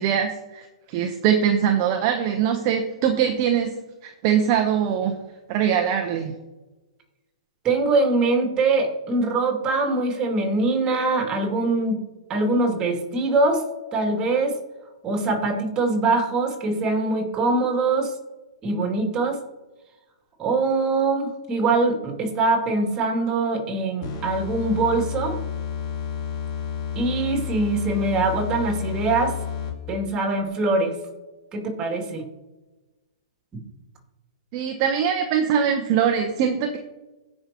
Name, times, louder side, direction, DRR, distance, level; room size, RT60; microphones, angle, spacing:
voice 1, 0.0-3.7 4.0-5.1 5.5-6.3 34.5-36.8, right 8 dB, 40° right, 4 dB, 0.9 m, -22 dB
voice 2, 7.6-12.0 12.3-13.6 13.9-14.5 15.0-18.1 18.6-19.4 20.4-25.4 27.0-29.4 29.9-30.9 31.5-32.2, right 3 dB, 25° right, 2 dB, 2.5 m, -23 dB
sound 1, 24.0-29.9, left 8 dB, 45° left, 2.7 m, -30 dB
16.5 x 5.6 x 3.0 m, 1.1 s
hypercardioid pair, 130°, 3 cm